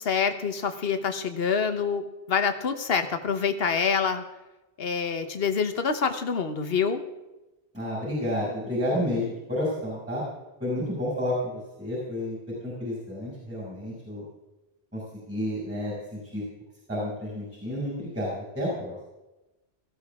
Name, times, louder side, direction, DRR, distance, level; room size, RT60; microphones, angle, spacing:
voice 1, 0.0-4.2 4.8-7.0, left 6 dB, 60° left, 8 dB, 1.3 m, -26 dB
voice 2, 7.7-10.2 10.6-14.2 14.9-15.0 15.3-16.4 16.9-19.0, left 1 dB, 10° right, -5 dB, 6.2 m, -30 dB
19.0 x 15.0 x 3.6 m, 1.0 s
omnidirectional pair, 1.1 m